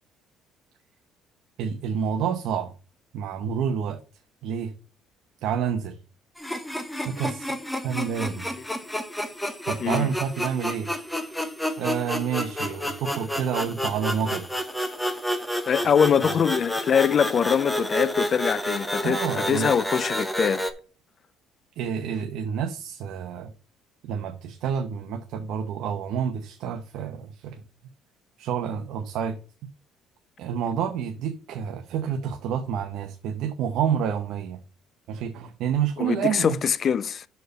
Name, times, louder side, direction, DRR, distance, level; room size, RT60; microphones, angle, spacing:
voice 1, 1.6-2.7 3.1-4.0 4.4-4.7 5.4-6.0 7.0-7.5 7.8-8.5 9.7-10.9 11.8-14.5 19.0-19.7 21.8-23.5 24.0-27.6 28.4-29.4 30.4-34.6 35.1-36.6, right 8 dB, 70° right, 0.8 m, -28 dB
sound 1, 6.4-20.7, equal, 5° left, 0.9 m, -30 dB
voice 2, 15.7-20.6 36.0-37.3, left 7 dB, 40° left, 0.4 m, -23 dB
6.5 x 4.6 x 6.6 m
cardioid pair, 130°, 0 cm